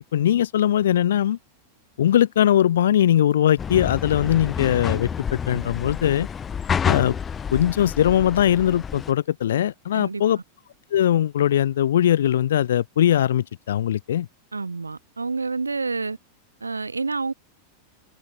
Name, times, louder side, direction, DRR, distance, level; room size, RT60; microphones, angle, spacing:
voice 1, 0.1-1.4 2.0-6.3 6.8-7.2 7.5-10.4 10.9-14.3, left 11 dB, 60° left, 0.4 m, -20 dB
sound 1, 3.6-9.1, left 7 dB, 20° left, 1.1 m, -29 dB
voice 2, 14.5-16.2 16.6-17.3, right 4 dB, 80° right, 0.8 m, -28 dB
figure-of-eight pair, 90°, 0 cm